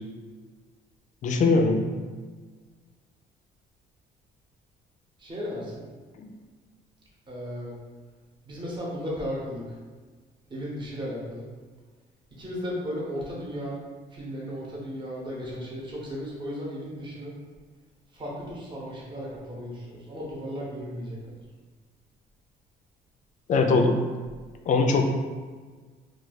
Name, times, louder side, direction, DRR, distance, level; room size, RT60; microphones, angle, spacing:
voice 1, 1.2-1.9 6.2-6.3 23.5-24.0 24.7-25.0, left 3 dB, 45° left, 4 dB, 0.4 m, -21 dB
voice 2, 5.2-5.8 7.3-7.7 8.4-9.8 10.5-11.5 12.4-13.8 14.1-17.3 18.1-21.4, equal, 25° right, -5 dB, 0.9 m, -35 dB
2.4 x 2.2 x 3.9 m, 1.4 s
cardioid pair, 110°, 17 cm